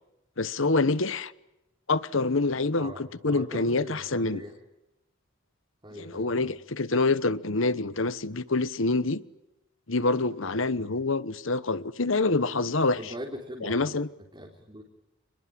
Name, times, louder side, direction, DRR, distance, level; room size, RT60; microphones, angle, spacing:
voice 1, 0.4-1.3 1.9-4.4 5.9-9.2 9.9-13.0 13.6-14.1, left 3 dB, 65° left, 1.2 m, -26 dB
voice 2, 2.8-4.6 5.8-6.5 10.7-10.9 12.9-13.9 14.3-14.8, equal, 20° right, 4.0 m, -41 dB
28.5 x 21.0 x 8.7 m
head